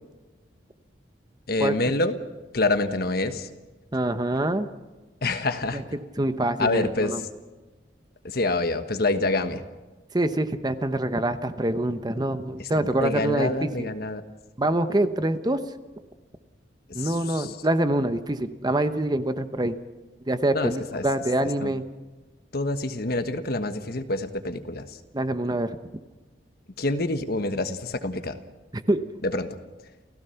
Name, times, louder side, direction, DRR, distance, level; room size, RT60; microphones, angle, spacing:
voice 1, 1.5-2.2 2.5-3.5 5.2-5.8 6.6-7.1 8.2-9.6 12.6-14.2 17.0-17.5 20.5-21.0 21.6-21.7 22.5-24.9 26.8-28.4 29.2-29.6, left 2 dB, 60° left, 8 dB, 1.3 m, -27 dB
voice 2, 3.9-4.7 5.7-5.8 6.2-7.2 10.1-13.9 14.6-15.6 16.9-19.8 20.3-21.8 25.1-25.8 28.9-29.0, right 1 dB, 25° right, 10 dB, 0.9 m, -25 dB
29.0 x 16.0 x 5.8 m, 1.2 s
head